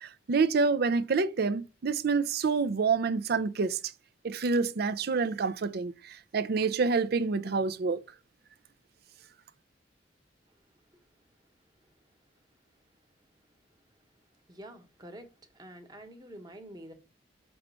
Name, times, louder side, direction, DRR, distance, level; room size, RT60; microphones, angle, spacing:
voice 1, 0.0-3.8 4.2-8.0, right 4 dB, 55° right, 0.5 m, -27 dB
voice 2, 14.5-15.3 15.5-16.9, right 1 dB, 20° right, 1.1 m, -47 dB
6.4 x 3.0 x 5.5 m
head